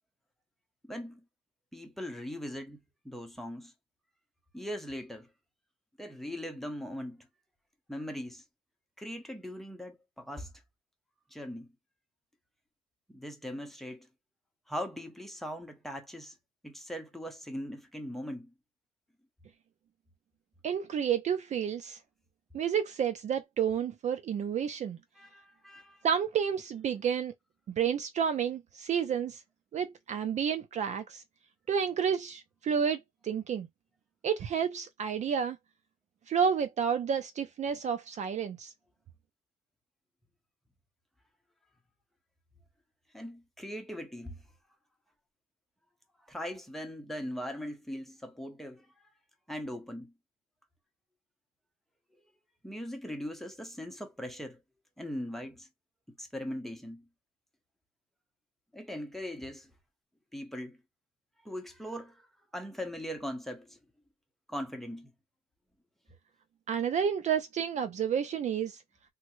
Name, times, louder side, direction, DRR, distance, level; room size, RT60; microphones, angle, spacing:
voice 1, 0.8-1.2 1.7-2.8 3.0-3.7 4.5-5.3 6.0-7.3 7.9-8.4 9.0-10.5 11.3-11.7 13.1-14.1 14.7-16.3 16.6-18.5 25.2-26.0 43.1-44.4 46.3-48.9 49.5-50.1 52.6-54.6 55.0-55.7 56.2-57.1 58.7-59.7 60.3-60.8 61.4-62.3 62.5-63.8 64.5-65.1, equal, ahead, 0.8 m, -40 dB
voice 2, 20.6-22.0 22.5-25.0 26.0-27.3 27.7-29.4 29.7-31.2 31.7-33.7 34.2-35.6 36.3-38.7 66.7-68.8, right 7 dB, 45° right, 0.5 m, -30 dB
3.3 x 2.1 x 3.1 m
cardioid pair, 110°, 17 cm